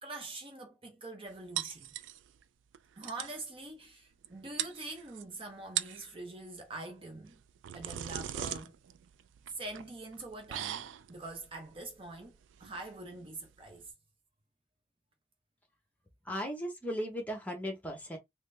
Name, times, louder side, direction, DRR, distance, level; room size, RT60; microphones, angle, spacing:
voice 1, 0.0-1.9 3.0-7.4 7.7-8.7 9.5-13.9, right 2 dB, 30° right, 0.7 m, -44 dB
sound 1, 1.6-2.4 2.7-2.8 3.0-3.4 4.2-4.3 4.6-5.2 5.6-6.1 7.3-13.9, right 11 dB, 90° right, 0.3 m, -40 dB
voice 2, 16.3-18.2, equal, 10° left, 0.9 m, -36 dB
3.8 x 2.1 x 3.3 m
head